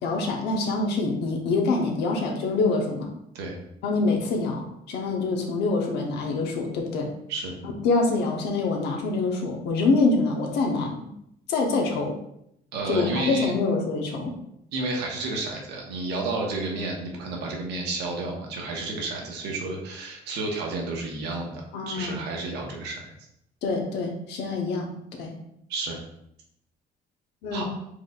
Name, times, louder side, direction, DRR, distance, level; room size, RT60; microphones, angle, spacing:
voice 1, 0.0-3.1 3.8-7.1 7.8-11.1 11.5-12.2 12.9-14.4 21.7-22.2 23.6-24.9 25.2-25.3 27.4-27.6, left 3 dB, 80° left, 1 dB, 1.0 m, -25 dB
voice 2, 12.7-13.5 14.7-23.1 25.7-26.0 27.5-27.6, right 2 dB, 85° right, 0 dB, 1.1 m, -31 dB
4.8 x 3.9 x 2.4 m, 0.76 s
cardioid pair, 110°, 17 cm